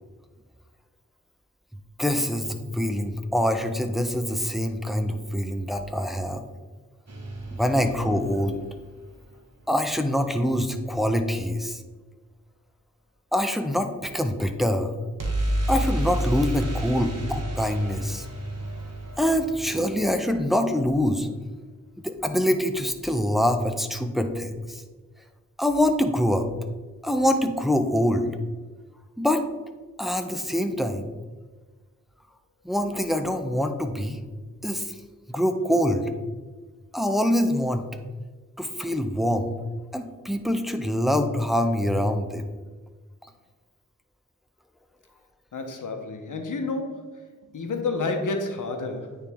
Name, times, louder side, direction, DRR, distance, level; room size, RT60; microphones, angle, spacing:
voice 1, 2.0-6.4 7.5-8.6 9.7-11.8 13.3-15.0 15.7-18.3 19.2-21.3 22.0-24.8 25.6-26.5 27.0-28.3 29.2-29.4 30.0-31.1 32.6-34.2 34.6-35.0 35.3-36.1 36.9-37.9 38.6-39.5 39.9-42.5, equal, ahead, 0.7 m, -25 dB
sound 1, 7.1-9.1 15.2-21.0, right 1 dB, 55° right, 1.2 m, -31 dB
voice 2, 45.5-47.1 47.5-49.2, left 3 dB, 80° left, 0.9 m, -30 dB
9.1 x 3.5 x 3.5 m
cardioid pair, 50°, 30 cm